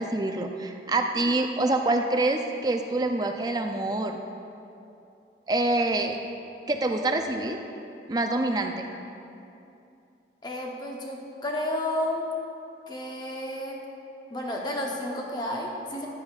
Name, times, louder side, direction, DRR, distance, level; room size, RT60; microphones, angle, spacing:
voice 1, 0.0-4.2 5.5-6.2 6.7-7.6 8.1-8.9, right 2 dB, 20° right, 4 dB, 0.4 m, -26 dB
voice 2, 10.4-12.3 12.9-13.8 14.3-16.1, left 1 dB, 25° left, -1 dB, 0.8 m, -31 dB
10.5 x 8.6 x 2.4 m, 2.7 s
head